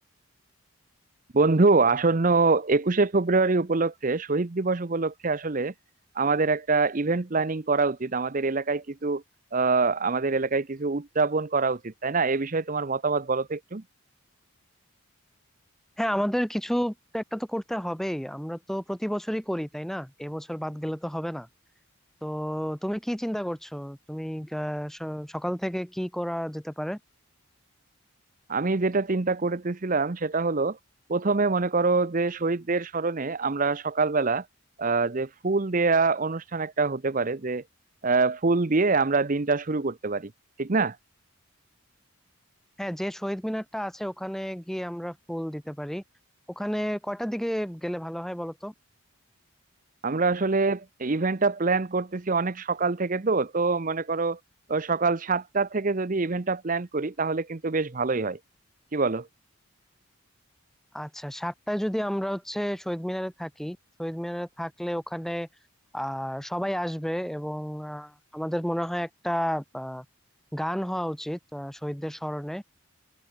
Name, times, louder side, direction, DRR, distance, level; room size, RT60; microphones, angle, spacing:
voice 1, 1.3-5.7 6.2-9.2 9.5-13.8 28.5-30.8 31.1-34.4 34.8-37.6 38.0-40.3 40.6-41.0 50.0-54.4 54.7-58.4 58.9-59.3, right 3 dB, 35° right, 0.7 m, -25 dB
voice 2, 16.0-21.5 22.2-27.0 42.8-46.0 46.6-48.7 60.9-65.5 65.9-70.0 70.5-72.6, equal, ahead, 0.9 m, -31 dB
open air
head